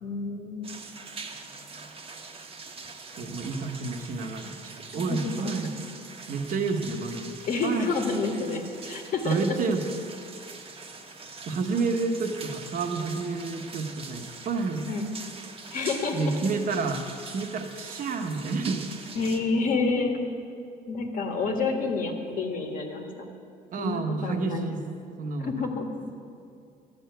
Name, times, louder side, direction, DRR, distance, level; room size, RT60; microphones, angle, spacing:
voice 1, 0.0-0.7 4.9-5.6 7.5-9.4 14.9-15.1 15.7-16.3 19.2-20.2 20.9-23.3 23.8-24.8 25.4-25.9, left 4 dB, 55° left, 2 dB, 1.7 m, -29 dB
sound 1, 0.6-19.4, right 4 dB, 35° right, 1.3 m, -43 dB
voice 2, 3.2-5.7 6.3-7.4 7.6-7.9 9.2-9.8 11.5-14.9 16.1-17.0 17.3-18.9 23.7-24.8 25.2-25.7, right 4 dB, 50° right, 5 dB, 1.3 m, -29 dB
13.0 x 6.8 x 9.2 m, 2.4 s
cardioid pair, 110°, 17 cm